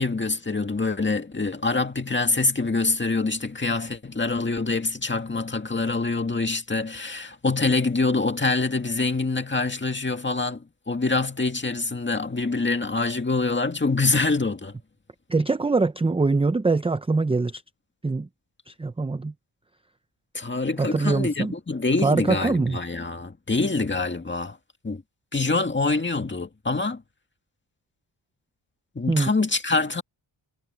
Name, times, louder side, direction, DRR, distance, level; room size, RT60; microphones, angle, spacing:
voice 1, 0.0-14.7 20.3-24.6 24.8-25.0 25.3-27.0 29.0-30.0, left 3 dB, 25° left, 2.0 m, -25 dB
voice 2, 15.3-17.6 18.0-18.3 18.7-19.3 20.8-21.5 22.0-22.8 29.1-29.3, right 3 dB, 10° right, 0.5 m, -23 dB
wide cardioid pair, 125°, 48 cm